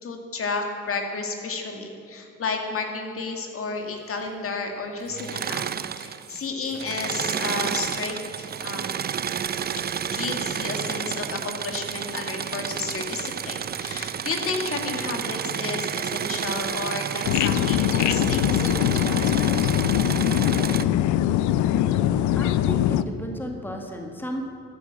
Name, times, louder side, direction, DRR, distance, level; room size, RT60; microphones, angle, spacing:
voice 1, 0.0-5.6 6.0-9.1 10.0-19.3, left 4 dB, 50° left, 3 dB, 2.0 m, -32 dB
Engine / Mechanisms, 5.1-6.4 6.7-20.8, right 8 dB, 35° right, 0.5 m, -30 dB
sound 1, 17.2-23.0, left 12 dB, 75° left, 0.6 m, -22 dB
voice 2, 22.4-24.5, equal, 5° left, 2 dB, 1.8 m, -33 dB
13.5 x 8.4 x 7.6 m, 2.3 s
supercardioid pair, 75°, 29 cm